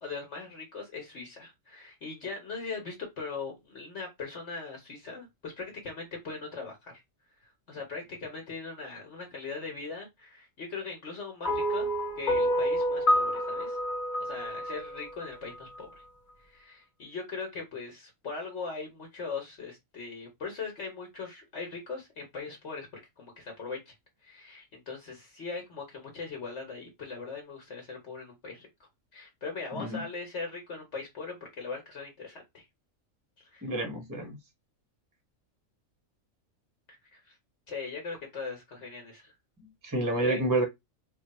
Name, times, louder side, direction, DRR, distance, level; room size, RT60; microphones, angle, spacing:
voice 1, 0.0-7.0 7.4-11.9 12.2-13.8 14.2-15.9 16.4-22.9 23.2-23.9 24.2-28.7 29.1-32.7 33.4-33.7 37.1-37.4 37.7-39.3 40.2-40.4, left 4 dB, 60° left, 1.3 m, -40 dB
sound 1, 11.4-15.8, equal, 40° left, 1.1 m, -28 dB
voice 2, 29.7-30.0 33.6-34.4 39.8-40.6, right 2 dB, 20° right, 0.6 m, -29 dB
3.1 x 2.2 x 4.1 m
omnidirectional pair, 1.4 m